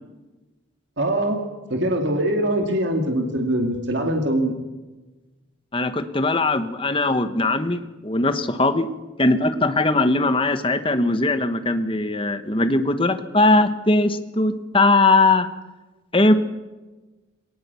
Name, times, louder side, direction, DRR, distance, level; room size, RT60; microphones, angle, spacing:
voice 1, 1.0-1.4 1.7-4.5, right 1 dB, 60° right, 2 dB, 2.5 m, -22 dB
voice 2, 5.7-8.9 9.2-15.5 16.1-16.3, left 2 dB, 25° left, 9 dB, 1.2 m, -20 dB
21.0 x 19.0 x 7.0 m, 1.2 s
head